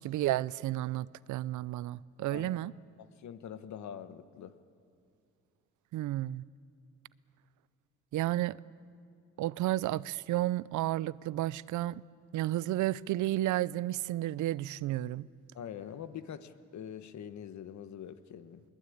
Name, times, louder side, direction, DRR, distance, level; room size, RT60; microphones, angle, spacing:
voice 1, 0.0-2.7 5.9-6.4 8.1-8.6 9.4-12.0 12.3-15.3, right 15 dB, 75° right, 0.5 m, -32 dB
voice 2, 2.3-2.7 3.0-4.5 15.5-18.6, left 9 dB, 70° left, 1.3 m, -44 dB
21.5 x 20.5 x 8.7 m
cardioid pair, 90°, 30 cm